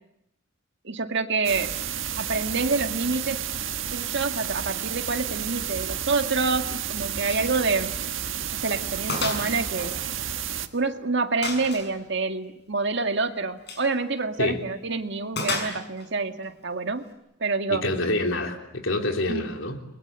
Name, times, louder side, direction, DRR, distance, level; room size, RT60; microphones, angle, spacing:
voice 1, 0.8-1.7 2.2-3.4 3.9-7.9 8.5-10.0 10.7-17.1 17.4-17.8 19.3-19.5, right 3 dB, 60° right, 6 dB, 2.0 m, -27 dB
sound 1, 1.4-10.7, right 9 dB, 75° right, 1.6 m, -31 dB
Gunshot gunfire, 7.3-7.5 7.8-8.0 8.4-8.5 9.1-9.5 9.8-10.8 11.4-11.9 13.6-13.9 15.4-16.1, left 3 dB, 55° left, 6.4 m, -31 dB
voice 2, 17.7-19.8, left 2 dB, 80° left, 4 dB, 3.5 m, -27 dB
29.5 x 22.0 x 8.2 m, 0.81 s
head